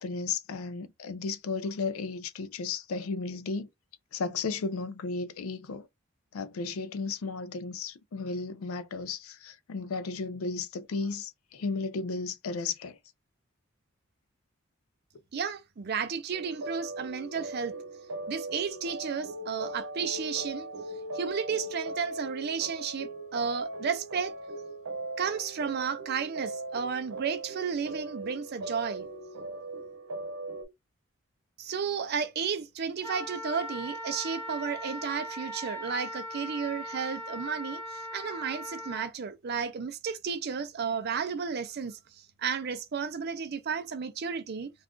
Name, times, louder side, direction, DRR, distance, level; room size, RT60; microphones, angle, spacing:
voice 1, 0.0-3.7 4.1-5.9 6.3-13.0, left 4 dB, 85° left, 0.4 m, -34 dB
voice 2, 15.3-17.7 18.3-20.7 21.1-24.3 25.2-29.1 31.6-42.0 42.4-44.7, right 6 dB, 50° right, 0.4 m, -33 dB
sound 1, 16.3-30.7, right 2 dB, 85° right, 0.8 m, -39 dB
Wind instrument woodwind instrument, 33.0-39.1, equal, 10° left, 0.6 m, -39 dB
2.4 x 2.3 x 3.6 m
head